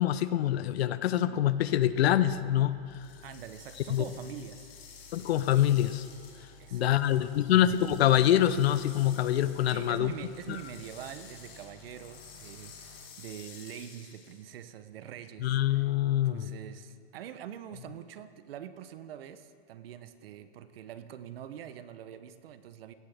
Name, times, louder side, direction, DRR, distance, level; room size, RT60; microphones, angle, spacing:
voice 1, 0.0-2.8 3.9-4.0 5.1-6.1 6.7-10.1 10.5-10.6 15.4-16.5, left 12 dB, 85° left, 15 dB, 0.6 m, -25 dB
sound 1, 1.6-13.0, left 3 dB, 65° left, 2.4 m, -55 dB
sound 2, 2.9-14.5, left 6 dB, 30° left, 1.6 m, -53 dB
voice 2, 3.2-4.7 6.6-7.3 9.7-15.8 16.2-22.9, right 10 dB, 70° right, 12 dB, 0.8 m, -44 dB
16.5 x 9.5 x 3.4 m, 2.4 s
supercardioid pair, 165°, 30 cm